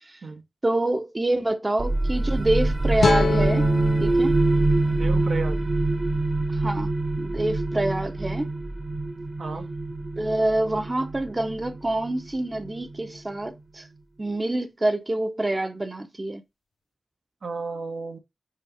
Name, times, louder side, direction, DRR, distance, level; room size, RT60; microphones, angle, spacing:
voice 1, 0.6-3.7 4.0-4.3 6.5-6.9 7.2-8.5 10.2-13.9 14.2-16.4, right 1 dB, 30° right, 0.9 m, -26 dB
sound 1, 1.8-13.2, right 2 dB, 50° right, 1.1 m, -25 dB
sound 2, 3.0-6.2, left 5 dB, 75° left, 0.5 m, -28 dB
voice 2, 4.9-5.6 9.4-9.7 17.4-18.2, right 4 dB, 80° right, 1.6 m, -33 dB
5.8 x 4.0 x 5.0 m
wide cardioid pair, 65°, 0 cm